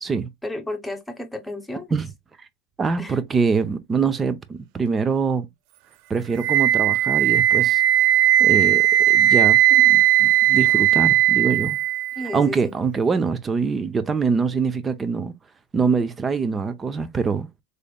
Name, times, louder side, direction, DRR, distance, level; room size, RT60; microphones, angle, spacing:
voice 1, 0.4-1.9 3.0-3.2 12.1-12.7, left 2 dB, 5° left, 1.1 m, -32 dB
voice 2, 2.8-5.5 6.1-7.8 8.4-11.8 12.3-15.3 15.7-17.5, right 5 dB, 20° right, 0.7 m, -24 dB
Wind instrument woodwind instrument, 6.4-12.4, right 14 dB, 60° right, 0.3 m, -17 dB
4.1 x 3.3 x 2.3 m
supercardioid pair, 115°, 0 cm